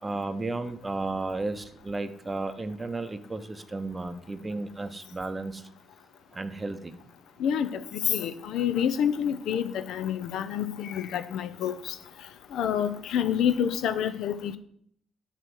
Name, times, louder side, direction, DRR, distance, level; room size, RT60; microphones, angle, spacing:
voice 1, 0.0-5.6 6.3-6.9, right 2 dB, 20° right, 10 dB, 0.6 m, -33 dB
voice 2, 7.4-11.9 12.5-14.6, left 9 dB, 80° left, 12 dB, 0.4 m, -28 dB
7.8 x 3.0 x 6.2 m, 0.67 s
cardioid pair, 90°, 0 cm